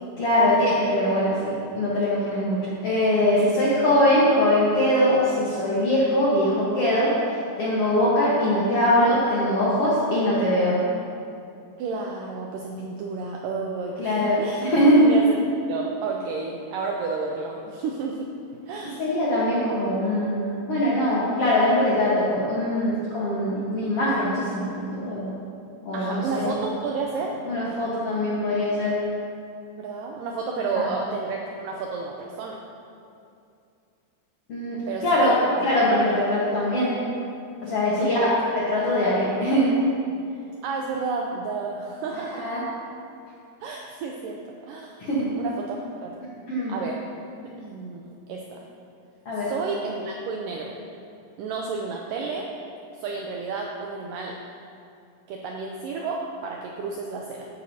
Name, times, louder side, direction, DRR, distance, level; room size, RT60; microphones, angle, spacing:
voice 1, 0.2-7.1 7.6-10.8 14.0-15.1 18.8-25.3 25.8-26.5 27.4-29.0 30.8-30.9 34.5-35.3 35.6-36.9 37.6-38.2 38.5-39.7 42.3-42.6 45.0-45.3 46.5-46.7 49.2-49.5, left 1 dB, 60° left, -8 dB, 1.6 m, -22 dB
voice 2, 11.8-14.6 15.0-18.3 18.7-19.0 25.9-27.3 29.8-32.6 34.9-35.2 35.5-35.7 38.0-38.4 40.6-42.5 43.6-45.1 45.4-46.1 46.7-47.0 47.4-48.7 49.3-50.8 51.4-52.5 53.0-54.4 55.3-57.5, right 4 dB, 85° right, 0 dB, 1.9 m, -31 dB
13.5 x 8.9 x 2.8 m, 2.5 s
omnidirectional pair, 4.6 m